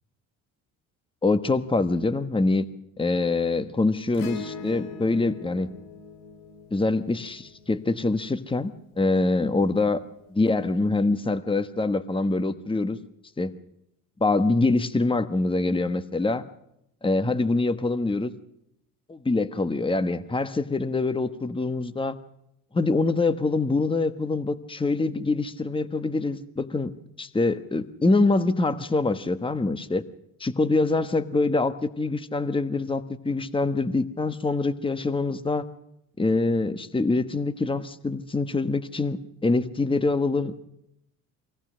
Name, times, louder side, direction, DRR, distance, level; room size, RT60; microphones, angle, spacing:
voice 1, 1.2-2.6 3.0-5.7 6.7-10.0 10.3-13.0 13.4-13.5 14.2-16.4 17.0-18.3 19.1-22.2 22.7-26.9 27.2-30.0 30.4-35.6 36.2-40.5, left 3 dB, 10° left, 11 dB, 1.3 m, -24 dB
Acoustic guitar / Strum, 4.1-8.7 10.6-10.7, left 3 dB, 85° left, 3.1 m, -42 dB
24.5 x 18.0 x 6.3 m, 0.79 s
supercardioid pair, 75°, 41 cm